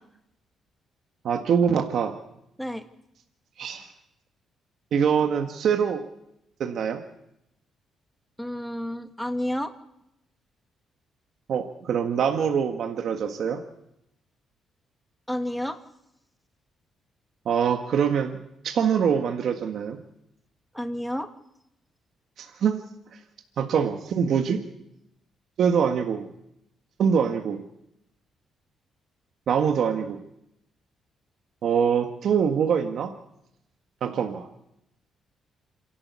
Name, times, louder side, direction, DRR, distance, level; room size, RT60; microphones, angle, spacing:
voice 1, 1.2-2.1 3.6-3.9 4.9-6.0 6.6-7.0 11.5-13.6 17.4-20.0 22.4-22.8 23.1-23.2 23.6-24.6 25.6-26.3 27.0-27.6 29.5-30.2 31.6-33.1 34.0-34.5, right 7 dB, 65° right, 5 dB, 1.7 m, -24 dB
voice 2, 8.4-9.7 15.3-15.8 20.7-21.3, left 1 dB, 5° left, 8 dB, 1.8 m, -30 dB
27.0 x 12.5 x 8.3 m, 0.83 s
cardioid pair, 90°, 0 cm